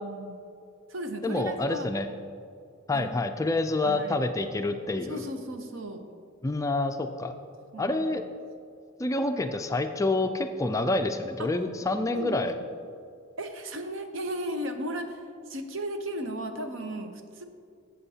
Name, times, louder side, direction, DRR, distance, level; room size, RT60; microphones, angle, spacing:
voice 1, 0.0-0.4 0.9-1.9 2.9-3.1 3.8-4.2 5.1-6.1 7.7-8.2 11.4-11.5 12.1-12.4 13.4-17.4, right 1 dB, 65° right, 6 dB, 0.8 m, -35 dB
voice 2, 1.2-2.1 2.9-5.2 6.4-7.3 7.8-8.2 9.0-12.5, left 2 dB, 15° left, 7 dB, 0.3 m, -27 dB
13.5 x 7.8 x 2.8 m, 2.3 s
head